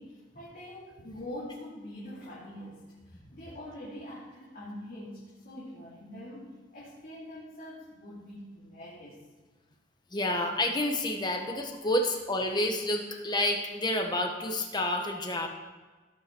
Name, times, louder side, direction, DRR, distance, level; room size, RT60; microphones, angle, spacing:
voice 1, 0.0-2.8 3.3-9.2, left 1 dB, 50° left, -9 dB, 2.9 m, -44 dB
voice 2, 10.1-15.5, left 1 dB, 25° left, 2 dB, 1.3 m, -29 dB
17.5 x 5.8 x 4.6 m, 1.3 s
head